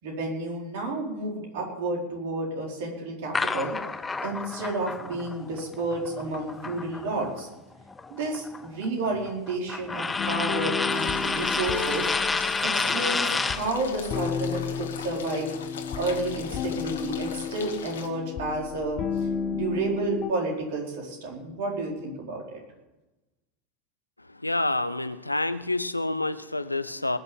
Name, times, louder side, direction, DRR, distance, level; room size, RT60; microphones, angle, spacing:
voice 1, 0.0-3.8 4.2-7.5 8.1-12.1 12.6-15.5 15.9-22.6, right 2 dB, 55° right, -1 dB, 4.6 m, -31 dB
sound 1, 3.3-7.4 7.7-13.7, left 4 dB, 15° left, 0.6 m, -30 dB
sound 2, 10.2-20.3, left 6 dB, 35° left, 0.9 m, -33 dB
sound 3, 10.9-18.1, left 7 dB, 65° left, 1.9 m, -39 dB
voice 2, 24.3-27.2, left 2 dB, 85° left, 13 dB, 0.7 m, -28 dB
20.0 x 6.7 x 8.8 m, 1.0 s
figure-of-eight pair, 80°, 0 cm